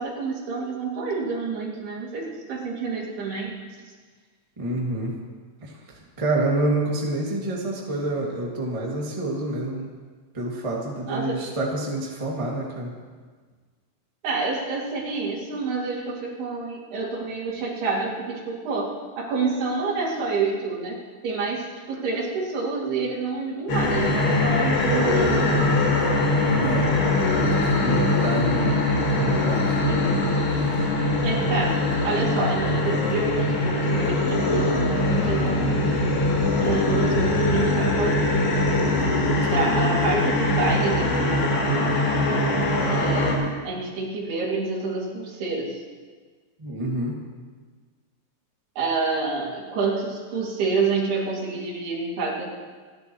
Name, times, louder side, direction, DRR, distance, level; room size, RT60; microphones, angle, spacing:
voice 1, 0.0-3.6 11.1-11.5 14.2-25.8 29.9-30.3 31.2-36.0 36.6-38.6 39.5-41.9 42.9-45.8 48.8-52.5, right 4 dB, 80° right, -4 dB, 4.7 m, -28 dB
voice 2, 4.6-5.1 5.6-5.7 6.2-9.9 10.3-12.9 26.4-26.9 27.3-28.8 29.1-29.8 30.6-30.8 46.6-47.2, right 2 dB, 15° right, -3 dB, 1.3 m, -28 dB
sound 1, 23.7-43.3, left 2 dB, 85° left, 4.5 m, -22 dB
sound 2, 35.0-42.2, equal, 45° right, 1.1 m, -38 dB
28.0 x 11.5 x 3.1 m, 1.5 s
omnidirectional pair, 4.5 m